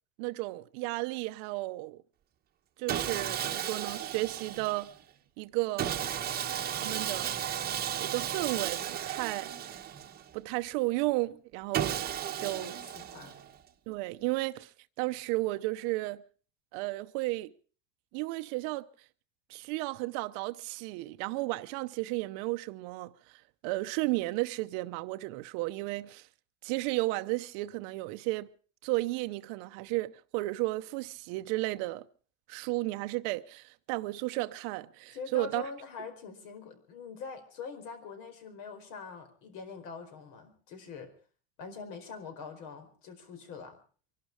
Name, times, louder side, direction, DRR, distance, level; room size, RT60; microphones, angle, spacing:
voice 1, 0.2-2.0 2.8-4.9 5.4-6.0 6.8-7.3 8.0-9.5 10.3-12.0 12.4-12.8 13.9-14.7 15.0-16.2 16.7-17.5 18.1-18.9 19.5-23.1 23.6-26.3 26.6-28.5 28.8-32.0 32.5-35.6, right 20 dB, 65° right, 0.8 m, -33 dB
Sawing, 2.9-4.9 5.8-10.3 11.7-13.6, right 9 dB, 25° right, 1.1 m, -34 dB
voice 2, 12.4-13.4 35.1-41.1 41.6-43.8, left 5 dB, 65° left, 4.8 m, -44 dB
25.0 x 12.0 x 4.8 m
cardioid pair, 155°, 35 cm